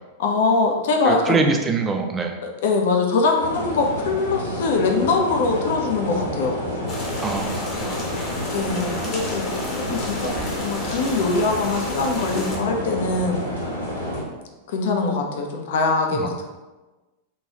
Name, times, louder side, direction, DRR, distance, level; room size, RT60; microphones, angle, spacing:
voice 1, 0.2-1.4 2.4-6.6 8.5-9.4 9.9-13.5 14.7-16.4, left 3 dB, 60° left, 2 dB, 0.4 m, -22 dB
voice 2, 1.0-2.4 7.2-8.3 16.1-16.4, right 4 dB, 20° right, 4 dB, 0.4 m, -25 dB
sound 1, 3.4-14.2, left 1 dB, 85° left, 0.9 m, -29 dB
sound 2, 6.9-12.6, left 1 dB, 40° left, 0.8 m, -34 dB
2.9 x 2.2 x 2.8 m, 1.2 s
figure-of-eight pair, 90°, 0 cm